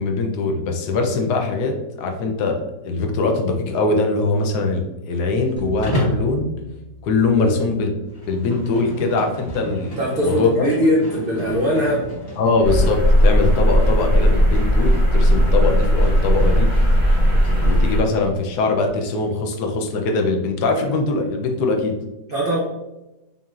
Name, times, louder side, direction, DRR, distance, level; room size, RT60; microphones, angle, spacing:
voice 1, 0.0-6.5 7.0-7.9 8.3-10.6 12.4-16.7 17.6-21.9, left 3 dB, 75° left, 3 dB, 1.1 m, -22 dB
sound 1, 5.6-9.9, right 2 dB, 10° left, 0.7 m, -39 dB
Livestock farm animals working animals, 5.8-6.3 8.0-17.8, right 1 dB, 40° left, 1.5 m, -32 dB
voice 2, 10.0-12.0 22.3-22.6, equal, 70° right, -3 dB, 0.5 m, -20 dB
sound 2, 12.6-18.0, equal, 15° right, 1.0 m, -16 dB
5.3 x 2.8 x 2.4 m, 0.99 s
omnidirectional pair, 1.8 m